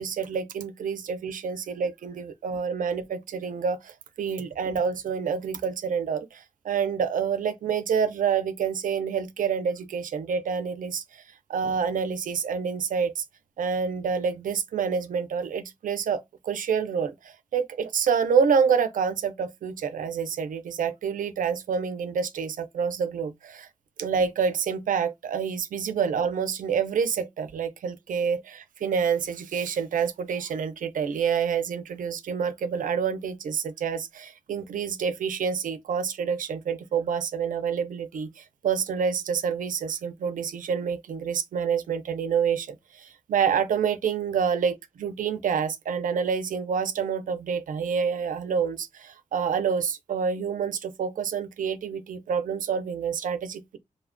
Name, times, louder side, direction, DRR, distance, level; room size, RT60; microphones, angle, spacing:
voice 1, 0.0-13.2 13.6-23.7 24.0-53.8, right 6 dB, 90° right, 0.4 m, -28 dB
3.0 x 2.1 x 2.4 m
wide cardioid pair, 170°, 13 cm